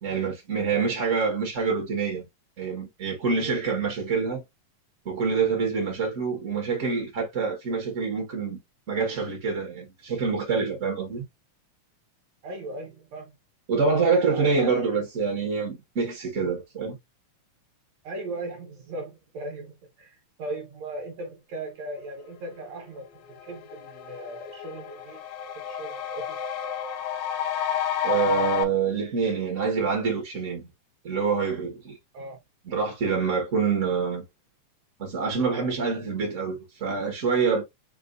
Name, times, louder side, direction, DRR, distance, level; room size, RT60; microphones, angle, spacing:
voice 1, 0.0-2.3 2.6-4.4 5.0-8.6 8.9-11.2 13.7-16.9 28.0-30.7 31.0-32.0 32.6-34.2 35.0-37.6, right 5 dB, 40° right, 1.1 m, -26 dB
voice 2, 0.7-1.0 3.3-3.6 12.4-13.4 14.2-14.6 18.0-25.2 25.6-26.4 32.1-32.4, right 2 dB, 65° right, 2.2 m, -38 dB
sound 1, 22.9-23.0 23.3-28.6, left 9 dB, 80° left, 2.0 m, -30 dB
6.8 x 2.5 x 2.5 m
omnidirectional pair, 3.5 m